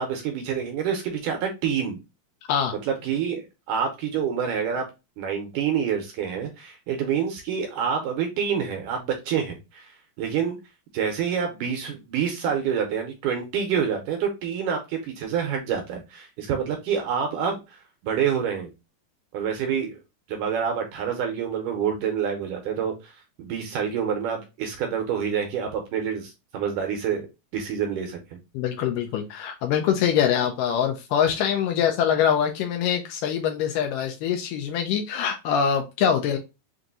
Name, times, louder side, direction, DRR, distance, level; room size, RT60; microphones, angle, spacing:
voice 1, 0.0-2.0 2.8-4.9 5.2-10.6 10.9-18.7 19.3-20.0 20.3-27.2 27.5-28.4, right 7 dB, 75° right, 2.1 m, -27 dB
voice 2, 28.5-36.4, left 8 dB, 80° left, 2.1 m, -24 dB
5.9 x 2.6 x 2.6 m
omnidirectional pair, 4.2 m